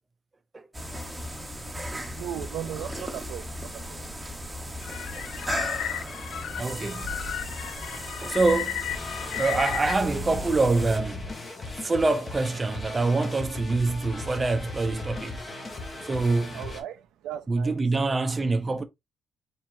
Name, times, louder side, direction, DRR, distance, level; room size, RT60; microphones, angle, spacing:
sound 1, 0.7-11.0, equal, 10° right, 1.0 m, -36 dB
voice 1, 2.2-4.0 16.5-17.7 18.1-18.2, right 11 dB, 85° right, 0.4 m, -37 dB
sound 2, 4.8-10.0, left 11 dB, 70° left, 0.4 m, -34 dB
voice 2, 6.4-7.2 7.8-7.9 8.2-8.9 9.4-11.3 11.8-15.4 16.0-16.7 17.5-18.8, right 3 dB, 25° right, 0.6 m, -26 dB
sound 3, 8.9-16.8, left 2 dB, 30° left, 1.5 m, -38 dB
4.3 x 3.6 x 2.7 m
cardioid pair, 90°, 0 cm